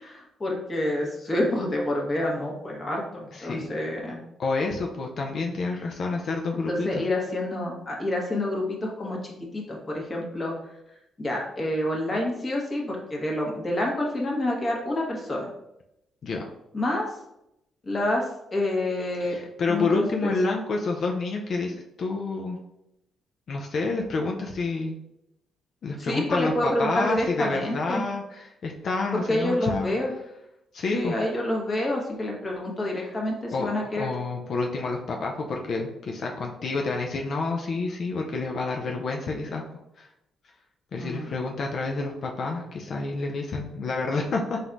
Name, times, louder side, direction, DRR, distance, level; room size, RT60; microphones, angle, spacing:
voice 1, 0.0-4.2 6.7-10.5 11.2-15.5 16.7-17.1 17.8-18.2 18.5-19.4 19.7-20.4 26.0-28.0 29.1-30.1 30.9-34.1 41.0-41.3, left 1 dB, 30° left, -1 dB, 1.3 m, -28 dB
voice 2, 3.3-3.7 4.4-7.0 16.2-16.5 19.2-22.6 23.5-25.0 25.8-29.9 30.7-31.2 33.5-33.7 34.0-39.6 40.0-40.1 40.9-44.6, left 3 dB, 55° left, 1 dB, 0.5 m, -29 dB
4.0 x 2.6 x 4.5 m, 0.84 s
cardioid pair, 90°, 0 cm